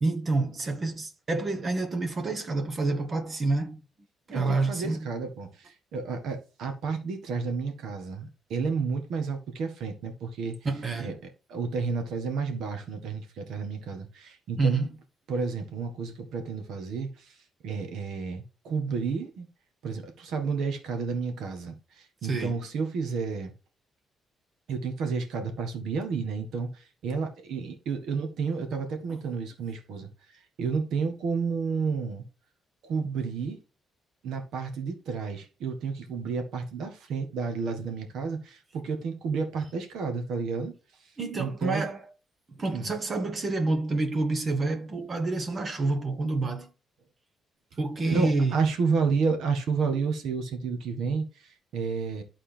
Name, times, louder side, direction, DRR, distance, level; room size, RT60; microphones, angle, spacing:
voice 1, 0.0-3.8 4.3-5.1 10.6-11.1 14.6-14.9 22.2-22.6 41.2-42.0 42.5-46.7 47.8-48.6, right 3 dB, 40° right, 1.2 m, -28 dB
voice 2, 4.3-10.6 11.0-11.1 11.5-14.8 15.3-19.5 19.8-23.5 24.7-32.2 32.8-33.6 34.2-40.7 41.0-41.1 41.4-41.8 42.7-42.9 48.1-52.2, right 5 dB, 80° right, 1.7 m, -31 dB
11.5 x 4.2 x 3.4 m
cardioid pair, 90°, 0 cm